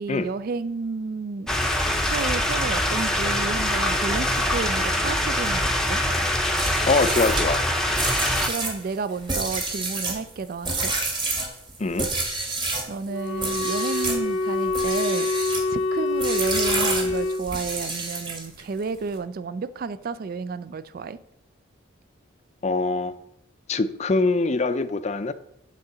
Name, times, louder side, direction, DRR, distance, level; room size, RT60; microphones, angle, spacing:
voice 1, 0.0-1.5 2.1-6.0 8.4-10.9 12.9-15.3 15.7-21.2, right 4 dB, 45° right, 0.3 m, -31 dB
sound 1, 1.5-8.5, left 1 dB, ahead, 0.7 m, -24 dB
sound 2, 6.5-12.9 13.4-14.2 14.7-15.7 16.2-18.6, right 3 dB, 25° right, 1.4 m, -29 dB
voice 2, 6.8-7.7 11.8-12.1 22.6-23.1 23.7-25.3, left 3 dB, 35° left, 0.4 m, -23 dB
Wind instrument woodwind instrument, 13.1-17.4, left 2 dB, 80° left, 0.8 m, -26 dB
8.3 x 3.8 x 6.8 m
head